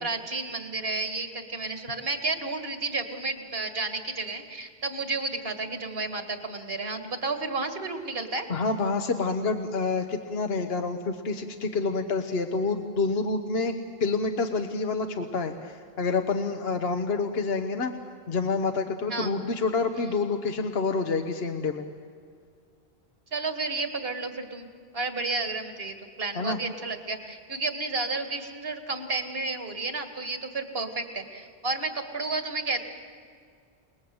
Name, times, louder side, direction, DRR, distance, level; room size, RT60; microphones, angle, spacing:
voice 1, 0.0-8.5 19.1-19.3 23.3-24.7 24.9-32.8, right 3 dB, 70° right, 6 dB, 2.2 m, -32 dB
voice 2, 8.5-13.7 14.0-17.9 18.3-21.8 26.4-26.6, left 4 dB, 75° left, 6 dB, 1.3 m, -28 dB
29.0 x 20.0 x 7.9 m, 2.2 s
omnidirectional pair, 1.0 m